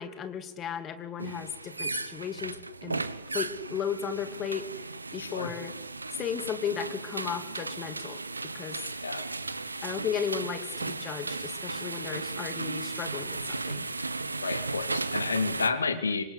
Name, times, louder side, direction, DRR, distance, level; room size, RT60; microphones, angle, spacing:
voice 1, 0.0-2.6 2.8-3.1 3.3-4.7 5.1-5.7 6.2-8.2 8.5-8.7 9.8-13.9, left 8 dB, 30° left, 10 dB, 2.9 m, -35 dB
sound 1, 1.2-15.7, right 3 dB, 80° right, 1.3 m, -35 dB
voice 2, 5.2-5.6 9.0-9.3 14.4-16.2, left 4 dB, 75° left, 9 dB, 2.8 m, -30 dB
27.5 x 25.0 x 8.5 m, 0.89 s
figure-of-eight pair, 90°, 0 cm